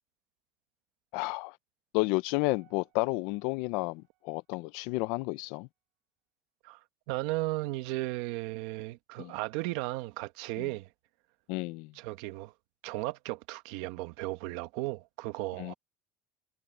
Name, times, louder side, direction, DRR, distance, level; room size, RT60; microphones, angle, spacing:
voice 1, 1.1-1.5 1.9-5.7 9.2-9.3 10.6-10.7 11.5-11.9 15.6-15.7, left 23 dB, 70° left, 0.5 m, -31 dB
Piano, 2.4-5.5 6.0-6.1, right 21 dB, 60° right, 7.4 m, -68 dB
voice 2, 7.1-10.9 11.9-12.5 12.8-15.7, right 20 dB, 75° right, 1.3 m, -35 dB
cardioid pair, 175°, 0 cm